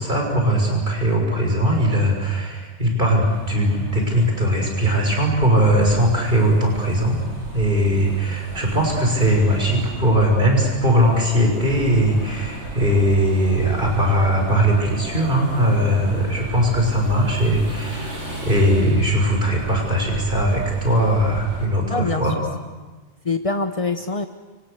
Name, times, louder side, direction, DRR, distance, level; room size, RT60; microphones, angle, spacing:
voice 1, 0.0-7.2 7.5-22.3, right 1 dB, 50° right, 1 dB, 6.2 m, -19 dB
sound 1, 3.2-21.7, right 1 dB, 85° right, 7.4 m, -35 dB
voice 2, 21.9-22.3 22.8-22.9 23.2-24.3, left 3 dB, 30° left, 7 dB, 1.0 m, -24 dB
30.0 x 27.0 x 6.8 m, 1.3 s
omnidirectional pair, 1.1 m